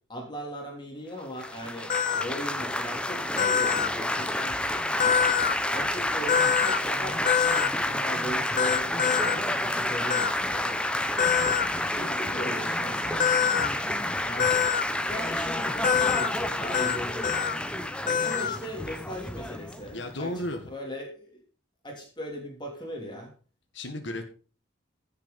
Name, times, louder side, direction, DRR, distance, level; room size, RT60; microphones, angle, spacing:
voice 1, 0.1-1.9 2.2-4.6 5.7-10.8 11.8-13.3 14.2-14.5 14.9-17.6 18.2-21.4 21.8-23.3, equal, 25° left, 1 dB, 2.9 m, -38 dB
Laughter / Applause / Chatter, 1.4-20.5, left 1 dB, 5° left, 0.8 m, -30 dB
sound 1, 1.9-2.2 3.4-3.9 5.0-5.5 6.3-6.8 7.3-7.7 8.6-9.4 10.1-10.3 11.2-11.7 13.2-13.7 14.4-14.8 15.8-16.3 16.7-17.0 17.2-17.5 18.1-18.6, left 7 dB, 40° left, 0.6 m, -24 dB
voice 2, 19.9-20.6 23.7-24.2, left 1 dB, 65° left, 5 dB, 1.7 m, -33 dB
15.5 x 6.8 x 5.3 m, 0.38 s
head